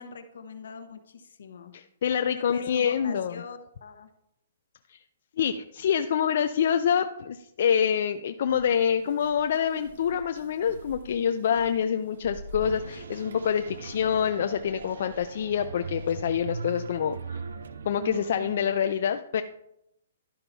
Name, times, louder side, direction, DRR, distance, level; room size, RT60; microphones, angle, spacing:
voice 1, 0.0-1.7 2.3-4.1, left 5 dB, 75° left, 8 dB, 1.0 m, -43 dB
voice 2, 1.7-3.4 4.9-5.0 5.4-17.4 17.9-19.4, left 8 dB, 55° left, 8 dB, 0.3 m, -26 dB
sound 1, 8.5-14.2, right 1 dB, 60° right, 1.1 m, -47 dB
sound 2, 12.6-18.8, right 4 dB, 80° right, 0.5 m, -39 dB
11.5 x 5.5 x 2.7 m, 0.80 s
hypercardioid pair, 165°, 0 cm